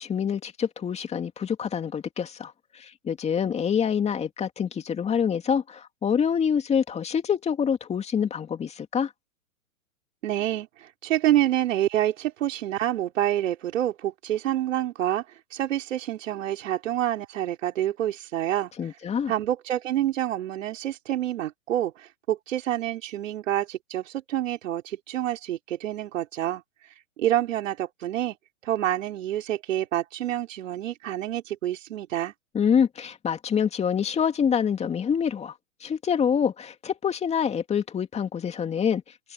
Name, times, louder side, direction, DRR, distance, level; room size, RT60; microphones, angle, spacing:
voice 1, 0.0-2.5 3.0-9.1 18.8-19.3 32.5-35.5 35.8-39.0, left 7 dB, 15° left, 2.4 m, -26 dB
voice 2, 10.2-15.2 15.5-18.9 19.3-26.6 27.2-28.4 28.6-32.3, right 12 dB, 65° right, 4.7 m, -27 dB
hypercardioid pair, 130°, 42 cm